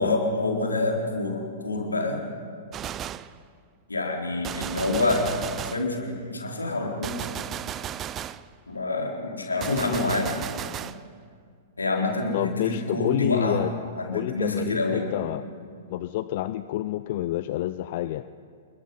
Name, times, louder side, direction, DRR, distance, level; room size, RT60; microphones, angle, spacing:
voice 1, 0.0-2.2 3.9-5.2 5.7-7.3 8.7-10.3 11.8-13.6 14.0-15.1, left 2 dB, 75° left, 0 dB, 3.9 m, -27 dB
Gunshot gunfire, 2.7-3.4 4.4-5.9 7.0-8.5 9.6-11.0, right 10 dB, 25° right, 0.5 m, -34 dB
voice 2, 12.3-13.7 14.1-15.4 15.9-18.2, left 15 dB, 45° left, 13 dB, 0.5 m, -28 dB
28.5 x 21.5 x 5.5 m, 2.2 s
figure-of-eight pair, 105°, 0 cm